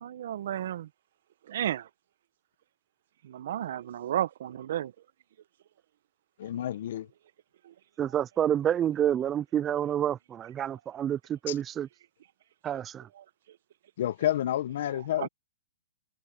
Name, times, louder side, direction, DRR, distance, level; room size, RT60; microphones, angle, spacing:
voice 1, 0.0-0.9 1.5-1.9 3.2-4.9 7.6-7.7 13.2-13.3 15.2-15.3, right 11 dB, 60° right, 1.2 m, -32 dB
voice 2, 6.4-7.1 11.5-11.6 14.0-15.3, left 12 dB, 60° left, 1.5 m, -29 dB
voice 3, 8.0-11.9 12.6-13.1, right 10 dB, 20° right, 0.4 m, -28 dB
hypercardioid pair, 130°, 0 cm